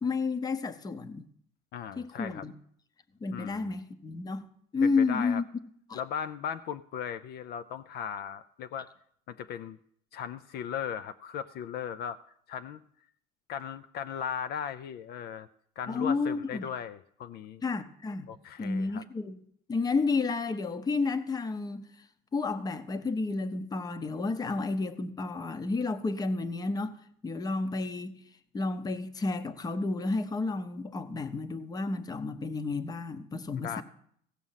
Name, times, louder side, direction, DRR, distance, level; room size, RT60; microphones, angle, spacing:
voice 1, 0.0-1.3 2.0-2.5 3.2-4.5 4.7-5.5 5.9-6.0 15.9-16.7 17.6-18.3 18.6-19.4 19.7-21.9 22.3-27.0 27.2-28.1 28.5-33.8, left 3 dB, 20° left, 0.7 m, -31 dB
voice 2, 1.7-2.4 3.3-3.7 4.8-5.4 5.9-8.9 9.3-9.8 10.1-12.2 12.5-12.8 13.5-15.5 15.8-17.6 18.3-19.0 33.6-33.8, left 8 dB, 55° left, 0.5 m, -37 dB
16.0 x 6.2 x 5.6 m
cardioid pair, 130°, 20 cm